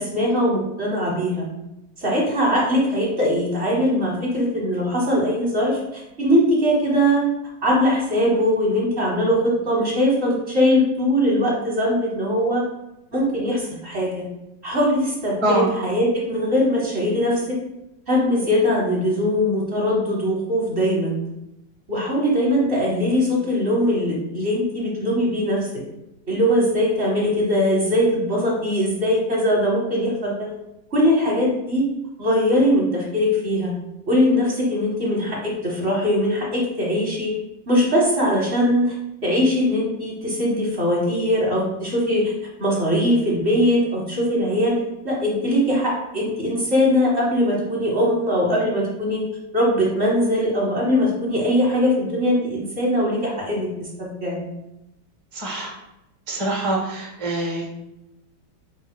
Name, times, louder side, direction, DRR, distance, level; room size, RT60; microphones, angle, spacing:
voice 1, 0.0-1.5 2.0-7.2 7.6-12.6 13.1-14.3 14.6-17.6 18.1-21.2 21.9-25.8 26.3-30.5 30.9-31.9 32.2-33.7 34.1-37.3 37.7-38.9 39.2-42.3 42.6-44.8 45.0-49.2 49.5-54.4, equal, 40° right, -4 dB, 1.2 m, -21 dB
voice 2, 55.3-55.7 56.3-57.7, right 1 dB, 20° right, -3 dB, 0.8 m, -24 dB
5.2 x 2.3 x 4.4 m, 0.89 s
omnidirectional pair, 2.1 m